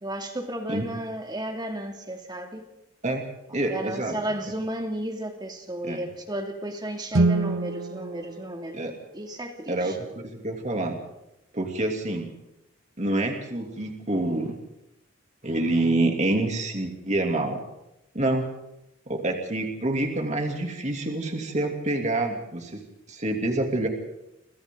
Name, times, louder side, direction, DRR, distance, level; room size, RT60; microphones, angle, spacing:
voice 1, 0.0-2.6 3.5-8.8 9.1-10.0, right 1 dB, 20° right, 4 dB, 2.7 m, -33 dB
voice 2, 3.5-4.2 5.8-6.0 8.7-8.9 9.7-11.0 11.5-12.3 13.0-14.6 15.4-17.6 18.1-18.5 19.1-22.8 23.1-23.9, right 2 dB, 35° right, 3 dB, 3.0 m, -27 dB
Guitar, 7.1-9.7, right 2 dB, 80° right, 0.9 m, -27 dB
29.0 x 26.0 x 4.0 m, 0.88 s
head